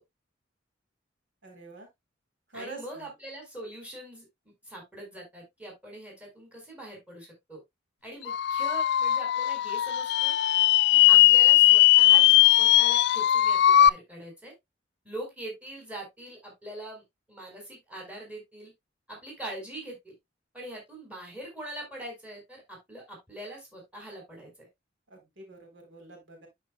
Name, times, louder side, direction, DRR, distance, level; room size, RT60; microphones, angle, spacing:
voice 1, 1.4-1.9 2.5-3.1 25.1-26.5, right 3 dB, 75° right, 3.7 m, -45 dB
voice 2, 2.5-4.3 4.6-7.6 8.0-10.3 10.9-12.2 12.6-14.5 15.0-17.0 17.3-18.7 19.1-20.1 20.5-24.7, right 1 dB, 5° right, 4.6 m, -42 dB
sound 1, 8.3-13.9, left 13 dB, 60° left, 0.3 m, -19 dB
12.0 x 5.4 x 2.3 m
head